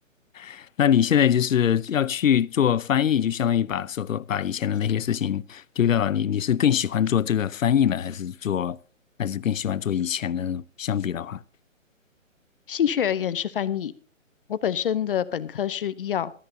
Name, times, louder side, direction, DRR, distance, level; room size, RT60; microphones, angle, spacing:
voice 1, 0.3-8.8 9.2-11.4, left 9 dB, 75° left, 0.7 m, -23 dB
voice 2, 12.7-13.9 14.5-16.3, left 9 dB, 40° left, 0.8 m, -26 dB
17.5 x 13.0 x 2.7 m
hypercardioid pair, 145°, 40 cm